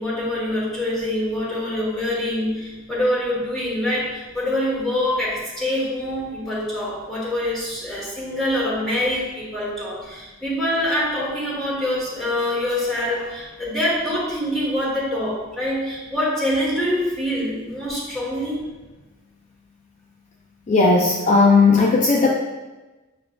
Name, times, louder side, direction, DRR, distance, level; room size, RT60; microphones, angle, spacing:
voice 1, 0.0-18.6, left 1 dB, ahead, -8 dB, 1.2 m, -25 dB
voice 2, 20.7-22.3, left 3 dB, 35° left, -1 dB, 0.3 m, -16 dB
6.2 x 3.0 x 2.3 m, 1.1 s
head